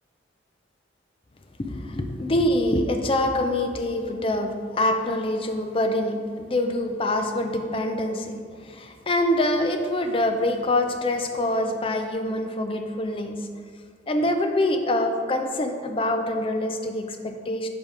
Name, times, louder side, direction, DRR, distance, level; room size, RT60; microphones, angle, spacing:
voice 1, 1.6-13.4 14.1-17.7, left 1 dB, 30° left, 5 dB, 0.5 m, -25 dB
5.5 x 5.2 x 4.7 m, 2.1 s
head